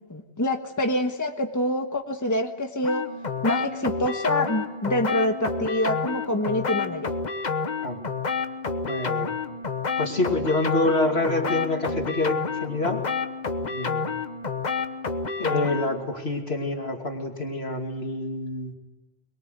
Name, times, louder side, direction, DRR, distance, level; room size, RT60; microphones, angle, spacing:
voice 1, 0.1-3.0 3.4-7.1, left 1 dB, 15° left, 4 dB, 1.4 m, -26 dB
sound 1, 2.8-16.0, left 4 dB, 45° left, 1.2 m, -29 dB
voice 2, 8.9-9.3 10.0-13.0 13.7-14.1 15.4-18.7, left 2 dB, 70° left, 2 dB, 3.0 m, -27 dB
24.0 x 22.0 x 8.1 m, 1.3 s
omnidirectional pair, 1.1 m